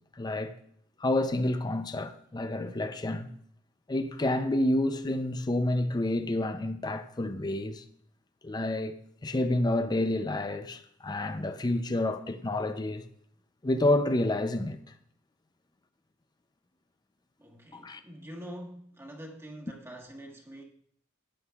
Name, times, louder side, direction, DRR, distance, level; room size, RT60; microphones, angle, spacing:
voice 1, 0.2-0.6 1.0-3.3 3.9-7.8 8.4-9.0 9.2-13.0 13.6-14.8 17.7-18.0, left 1 dB, 20° left, 0.5 m, -29 dB
voice 2, 17.4-20.6, equal, 15° right, 1.5 m, -45 dB
13.5 x 9.6 x 2.4 m
head